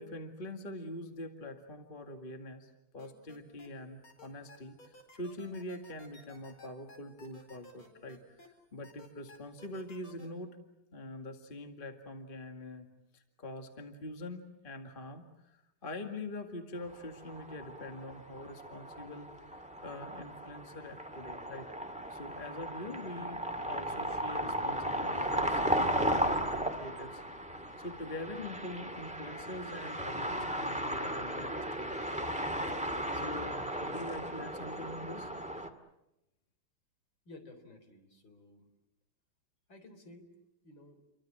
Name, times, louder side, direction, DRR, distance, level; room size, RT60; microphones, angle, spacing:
voice 1, 0.0-10.6 10.9-12.9 13.1-21.7 22.1-27.2 27.5-32.1 33.1-35.3, left 1 dB, 25° left, 5 dB, 2.1 m, -44 dB
sound 1, 3.0-3.7 4.0-8.5 8.8-10.3, left 2 dB, 90° left, 5.8 m, -55 dB
sound 2, 16.9-35.7, equal, 5° right, 2.0 m, -36 dB
voice 2, 37.3-38.6 39.7-40.3 40.6-41.0, left 2 dB, 60° left, 7 dB, 4.6 m, -53 dB
29.5 x 24.0 x 7.6 m, 0.90 s
omnidirectional pair, 2.3 m